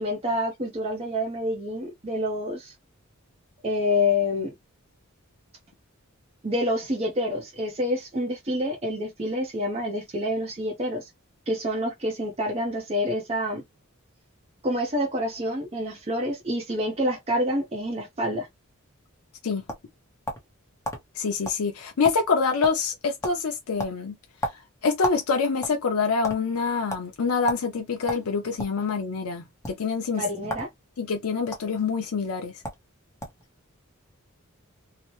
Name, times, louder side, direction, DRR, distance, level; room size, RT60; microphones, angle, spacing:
voice 1, 0.0-2.7 3.6-4.5 6.4-11.1 11.5-13.6 14.6-18.5 30.1-30.7, left 1 dB, 30° right, 0.6 m, -27 dB
sound 1, 19.1-20.5 20.8-21.0 21.4-21.6 21.9-22.4 22.6-22.9 23.2-23.4 23.8-25.2 25.5-26.4 26.9-27.0 27.5-27.6 28.1-28.8 29.5-29.7 30.4-30.7 31.0-31.6 32.3-32.4 32.6-32.8 33.2-33.5, equal, 15° left, 0.7 m, -33 dB
voice 2, 21.2-24.1 24.8-30.2 31.0-32.5, left 5 dB, 85° left, 0.5 m, -26 dB
2.8 x 2.1 x 3.0 m
head